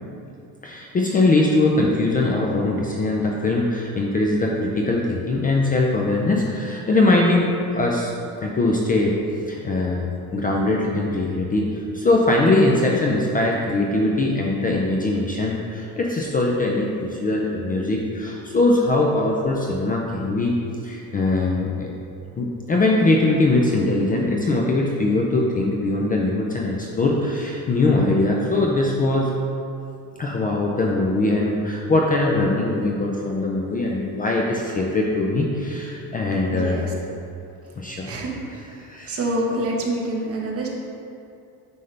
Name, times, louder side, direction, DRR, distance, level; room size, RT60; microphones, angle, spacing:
voice 1, 0.6-8.1 8.4-9.2 9.5-20.6 20.8-21.9 22.4-29.3 30.2-37.0 37.8-38.1 38.8-39.3, left 2 dB, 25° left, -1 dB, 0.4 m, -21 dB
voice 2, 36.5-36.9 38.0-38.3 39.1-40.7, right 1 dB, 35° right, -2 dB, 1.1 m, -26 dB
9.5 x 5.4 x 3.3 m, 2.6 s
cardioid pair, 175°, 39 cm